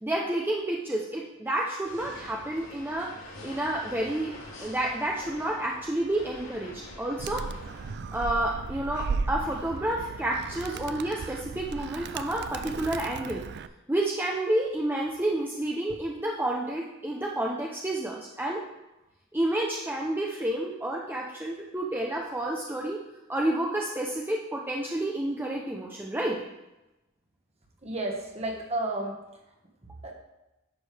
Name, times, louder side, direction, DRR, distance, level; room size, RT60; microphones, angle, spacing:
voice 1, 0.0-3.1 3.4-4.3 4.6-7.4 8.1-13.4 13.9-18.6 19.3-23.0 23.3-26.4, right 1 dB, 10° right, -2 dB, 0.7 m, -30 dB
sound 1, 1.8-7.9, left 1 dB, 70° left, 3.2 m, -45 dB
Animal, 7.2-13.7, right 4 dB, 55° right, 0.4 m, -36 dB
voice 2, 27.8-29.5 30.0-30.1, right 2 dB, 30° right, 1 dB, 1.5 m, -33 dB
10.5 x 6.8 x 3.4 m, 0.95 s
head